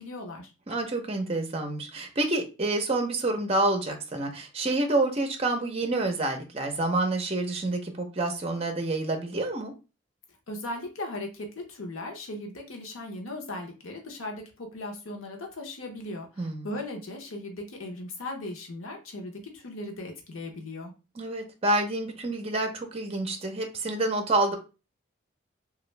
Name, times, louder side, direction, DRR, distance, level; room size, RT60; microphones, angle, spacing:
voice 1, 0.0-0.5 10.5-20.9, left 1 dB, 90° left, 2 dB, 0.8 m, -38 dB
voice 2, 0.7-9.7 16.4-16.7 21.2-24.6, right 2 dB, 30° right, 4 dB, 0.5 m, -28 dB
3.0 x 2.4 x 3.2 m, 0.31 s
head